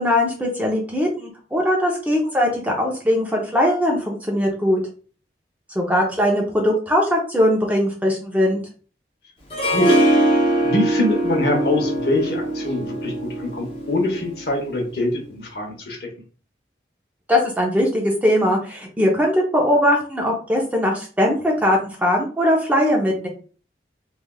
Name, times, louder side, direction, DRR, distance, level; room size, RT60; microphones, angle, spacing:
voice 1, 0.0-4.8 5.7-8.6 17.3-23.3, left 1 dB, 10° right, -1 dB, 0.5 m, -20 dB
Harp, 9.5-14.6, right 1 dB, 30° left, 0.6 m, -21 dB
voice 2, 9.7-10.2 10.6-16.1, left 2 dB, 60° left, 0 dB, 0.8 m, -24 dB
3.3 x 2.3 x 2.2 m, 0.40 s
head